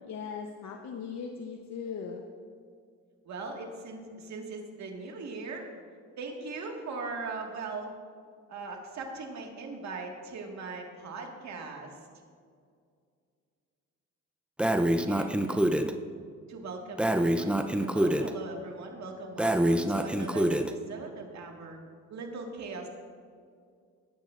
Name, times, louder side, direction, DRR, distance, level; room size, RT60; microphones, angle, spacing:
voice 1, 0.1-2.2, left 6 dB, 65° left, 3 dB, 0.9 m, -38 dB
voice 2, 3.2-5.7 6.2-7.9 8.5-12.0 15.1-15.6 16.5-21.8 22.1-22.9, right 3 dB, 65° right, 2 dB, 1.9 m, -40 dB
Breathing, 14.6-15.9 17.0-18.3 19.4-20.7, right 1 dB, 5° right, 0.6 m, -26 dB
17.5 x 8.5 x 2.5 m, 2.2 s
cardioid pair, 90°, 30 cm